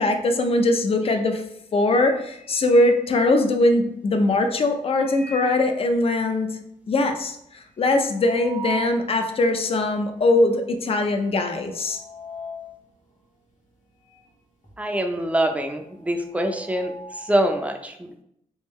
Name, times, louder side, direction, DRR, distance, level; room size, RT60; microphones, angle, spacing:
voice 1, 0.0-1.4 1.7-6.5 6.9-7.4 7.8-12.0, left 2 dB, 45° left, 6 dB, 0.5 m, -21 dB
sound 1, 1.0-1.4 1.8-3.8 4.8-5.8 6.2-6.3 6.5-6.6 7.0-9.1 9.6-9.7 10.5-10.8 11.1-14.4 14.6-17.6, right 2 dB, 65° left, 1.1 m, -41 dB
voice 2, 14.8-18.2, right 1 dB, 10° right, 4 dB, 0.5 m, -25 dB
3.6 x 2.6 x 3.1 m, 0.76 s
cardioid pair, 90°, 14 cm